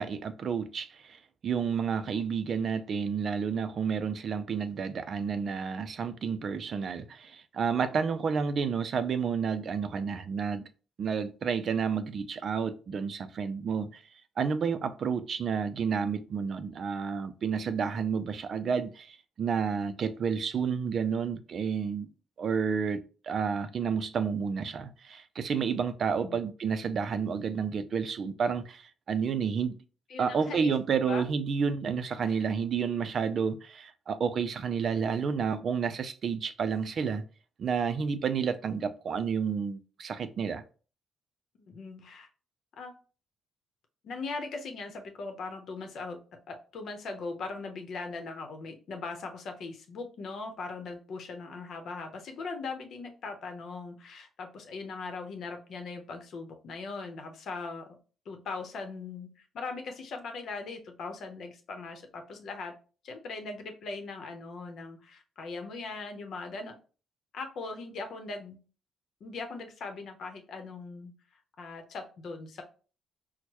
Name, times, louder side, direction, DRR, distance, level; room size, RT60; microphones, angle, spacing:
voice 1, 0.0-10.7 11.0-14.0 14.4-22.1 22.4-29.8 30.2-37.2 37.6-40.6, right 6 dB, 55° right, 0.4 m, -30 dB
voice 2, 30.1-31.2 32.2-32.4 41.6-42.3 42.8-42.9 44.0-46.2 46.5-58.0 58.3-62.7 63.0-66.8 67.3-68.6 69.2-71.1 71.6-72.6, left 4 dB, 65° left, 0.8 m, -40 dB
4.4 x 2.1 x 2.9 m
cardioid pair, 90°, 0 cm